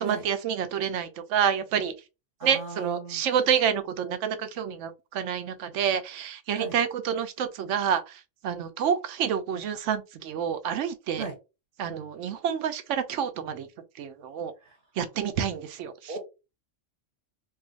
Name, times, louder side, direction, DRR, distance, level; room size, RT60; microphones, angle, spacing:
voice 1, 0.0-1.9 2.4-11.2 11.8-13.7 14.0-14.5 15.0-16.1, right 8 dB, 80° right, 0.9 m, -28 dB
voice 2, 2.4-3.2 6.5-6.7 11.2-11.3 14.6-14.8 16.1-16.2, right 4 dB, 50° right, 0.9 m, -36 dB
2.7 x 2.4 x 3.8 m
omnidirectional pair, 1.3 m